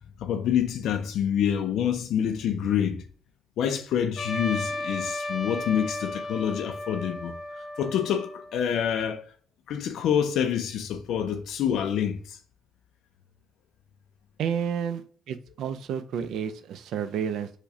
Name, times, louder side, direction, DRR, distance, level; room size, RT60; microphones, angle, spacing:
voice 1, 0.2-3.0 3.6-7.3 7.8-9.3 9.7-12.4, left 9 dB, 80° left, 0.3 m, -27 dB
Trumpet, 4.2-8.6, left 2 dB, 40° left, 0.7 m, -34 dB
voice 2, 14.4-17.5, right 8 dB, 80° right, 0.3 m, -31 dB
4.7 x 2.1 x 2.7 m
cardioid pair, 90°, 0 cm